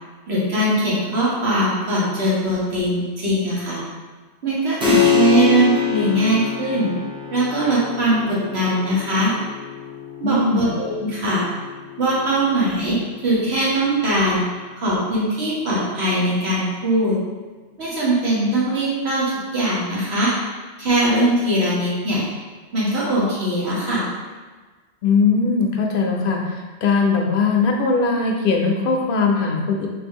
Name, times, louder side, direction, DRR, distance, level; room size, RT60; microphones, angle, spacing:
voice 1, 0.3-3.8 4.4-6.9 7.3-9.3 10.2-11.5 12.0-13.0 13.2-14.4 14.8-17.1 17.8-20.3 20.8-22.2 22.7-24.1, right 1 dB, 70° right, -7 dB, 1.3 m, -21 dB
Keyboard (musical), 4.8-15.0, left 7 dB, 10° right, 0.3 m, -26 dB
voice 2, 10.2-10.7 25.0-29.9, left 4 dB, 60° left, 1 dB, 0.7 m, -20 dB
3.2 x 2.9 x 3.5 m, 1.3 s
omnidirectional pair, 1.1 m